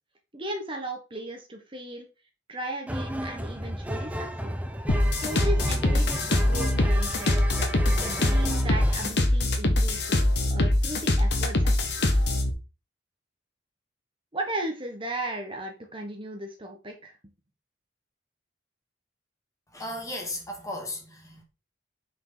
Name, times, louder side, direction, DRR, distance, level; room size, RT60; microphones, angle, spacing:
voice 1, 0.3-2.1 2.5-4.5 5.1-7.4 8.0-12.0 14.3-17.2, right 1 dB, 30° right, 1.3 m, -36 dB
sound 1, 2.9-9.2, right 1 dB, 10° right, 0.7 m, -33 dB
sound 2, 4.9-12.5, left 1 dB, 65° left, 1.3 m, -23 dB
voice 2, 19.7-21.4, left 1 dB, 20° left, 1.8 m, -35 dB
6.0 x 5.0 x 4.0 m
head